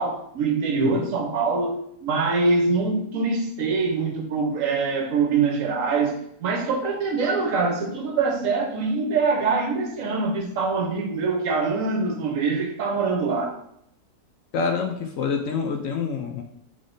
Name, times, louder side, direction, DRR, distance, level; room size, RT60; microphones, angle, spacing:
voice 1, 0.0-13.6, right 4 dB, 65° right, 1.0 m, -24 dB
voice 2, 0.8-1.1 14.5-16.4, left 5 dB, 70° left, 0.9 m, -27 dB
3.6 x 3.3 x 3.9 m
omnidirectional pair, 1.6 m